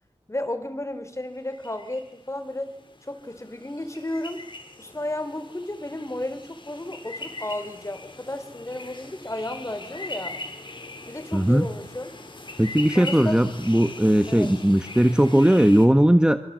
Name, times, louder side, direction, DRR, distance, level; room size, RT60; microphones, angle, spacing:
voice 1, 0.3-2.8 3.0-4.4 4.8-10.4 11.1-12.2 12.9-13.4 14.3-14.5, left 1 dB, 25° left, 9 dB, 4.3 m, -33 dB
sound 1, 1.3-15.9, left 2 dB, 45° left, 5.6 m, -41 dB
voice 2, 11.3-11.7 12.6-16.4, right 1 dB, 5° right, 10 dB, 1.5 m, -18 dB
26.0 x 26.0 x 7.8 m, 0.77 s
wide cardioid pair, 60°, 11 cm